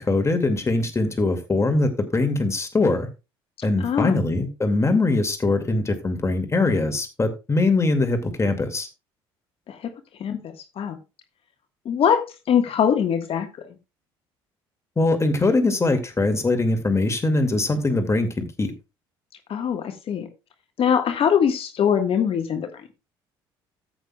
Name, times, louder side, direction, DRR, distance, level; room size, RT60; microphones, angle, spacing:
voice 1, 0.0-3.1 3.6-8.9 15.0-18.7, left 2 dB, 25° left, 2.2 m, -22 dB
voice 2, 3.8-4.2 9.7-9.9 10.2-11.0 11.8-13.7 19.5-20.3 20.8-22.7, left 8 dB, 50° left, 1.5 m, -22 dB
14.0 x 8.2 x 2.3 m
hypercardioid pair, 60°, 12 cm